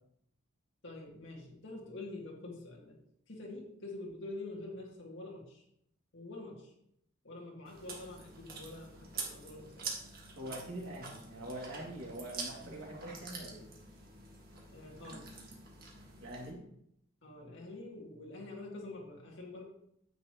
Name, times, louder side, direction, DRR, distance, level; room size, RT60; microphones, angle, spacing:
voice 1, 0.8-3.0 3.3-5.6 6.1-6.7 7.2-9.9 12.6-12.7 14.7-15.3 17.2-19.6, left 2 dB, 60° left, -2 dB, 2.1 m, -46 dB
Chewing mastication, 7.6-16.5, right 4 dB, 45° right, 1.7 m, -46 dB
voice 2, 10.4-13.6 16.2-16.6, right 1 dB, 85° right, -2 dB, 2.6 m, -44 dB
9.5 x 7.8 x 3.1 m, 0.74 s
head